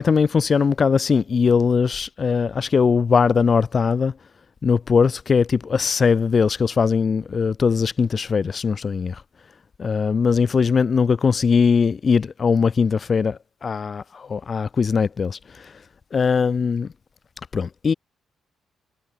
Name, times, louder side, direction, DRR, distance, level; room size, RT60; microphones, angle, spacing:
voice 1, 0.0-4.1 4.6-9.2 9.8-15.4 16.1-16.9 17.5-17.9, left 5 dB, 40° left, 1.9 m, -20 dB
cardioid pair, 90°, 0 cm